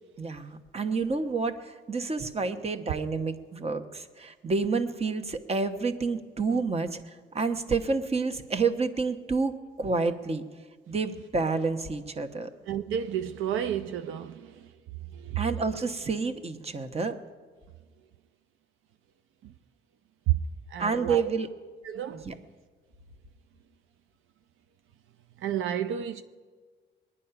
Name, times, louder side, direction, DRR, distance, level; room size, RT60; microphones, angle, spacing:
voice 1, 0.2-10.4 10.9-12.5 15.4-17.2 20.8-21.5 22.1-22.4, right 4 dB, 30° right, 1.1 m, -29 dB
voice 2, 12.7-14.6 15.1-15.4 19.4-19.5 20.3-20.4 20.7-21.3 21.8-22.3 25.4-26.2, right 10 dB, 80° right, 0.6 m, -31 dB
21.5 x 10.0 x 5.8 m
cardioid pair, 90°, 20 cm